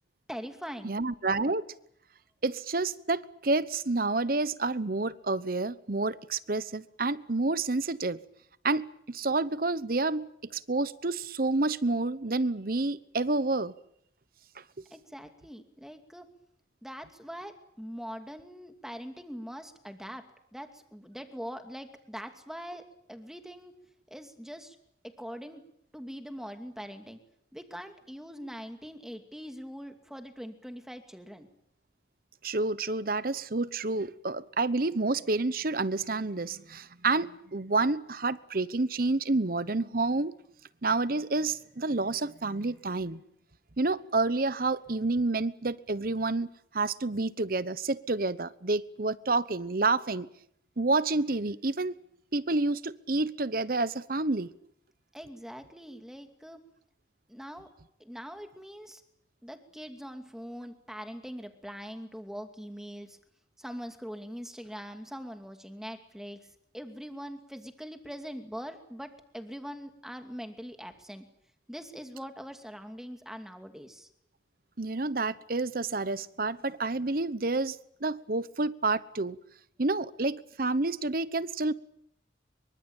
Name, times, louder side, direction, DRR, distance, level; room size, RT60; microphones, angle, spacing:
voice 1, 0.3-1.0 14.9-16.3 16.8-20.2 20.5-23.7 24.1-24.8 25.0-25.6 25.9-27.2 27.5-31.5 55.1-56.6 57.3-57.7 58.0-59.0 59.4-63.2 63.6-66.4 66.7-71.2 71.7-74.1, equal, 5° right, 2.6 m, -42 dB
voice 2, 0.8-1.6 2.4-8.2 8.6-13.7 14.6-14.7 32.4-40.3 40.8-43.2 43.8-46.5 46.7-50.3 50.8-51.9 52.3-54.5 74.8-79.4 79.8-81.7, right 3 dB, 50° right, 1.0 m, -29 dB
25.5 x 24.0 x 9.0 m
head